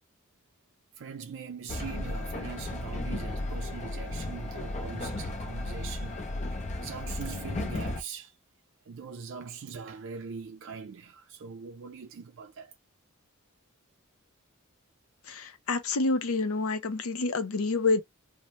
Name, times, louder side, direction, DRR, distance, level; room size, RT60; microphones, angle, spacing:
voice 1, 1.0-6.2 6.5-8.3 8.9-12.8, right 5 dB, 60° right, 0.4 m, -42 dB
Train, 1.7-8.0, left 2 dB, 35° left, 0.5 m, -34 dB
voice 2, 15.3-18.0, left 3 dB, 75° left, 0.5 m, -28 dB
2.8 x 2.0 x 3.0 m
head